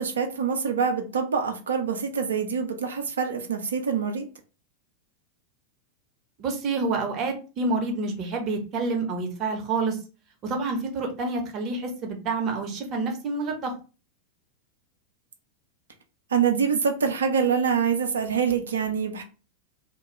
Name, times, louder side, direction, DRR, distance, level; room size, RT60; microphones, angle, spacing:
voice 1, 0.0-4.3 16.3-19.2, right 6 dB, 65° right, 0.4 m, -25 dB
voice 2, 6.4-10.0 10.4-13.7, right 3 dB, 35° right, 0.8 m, -28 dB
2.6 x 2.2 x 3.0 m
figure-of-eight pair, 90°, 0 cm